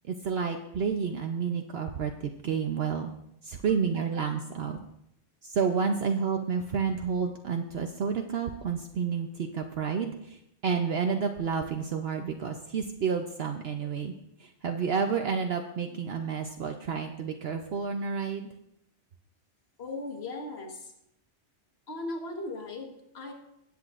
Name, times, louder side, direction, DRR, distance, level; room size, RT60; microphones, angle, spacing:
voice 1, 0.0-3.1 3.4-4.8 5.4-14.1 14.4-18.5, right 6 dB, 65° right, 4 dB, 0.9 m, -30 dB
voice 2, 19.8-20.9 21.9-23.3, left 2 dB, 60° left, 2 dB, 1.6 m, -37 dB
19.5 x 8.5 x 2.5 m, 0.79 s
omnidirectional pair, 1.2 m